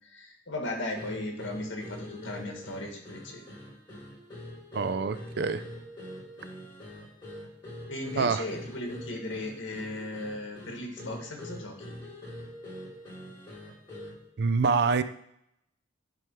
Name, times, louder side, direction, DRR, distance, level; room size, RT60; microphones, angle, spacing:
voice 1, 0.1-3.4 7.9-11.9, left 1 dB, 80° left, 2 dB, 1.8 m, -37 dB
sound 1, 1.0-14.3, left 1 dB, 25° left, 3.2 m, -44 dB
voice 2, 4.7-5.6 8.2-8.4 14.4-15.0, right 5 dB, 60° right, 12 dB, 0.4 m, -26 dB
10.5 x 3.6 x 4.6 m, 0.74 s
head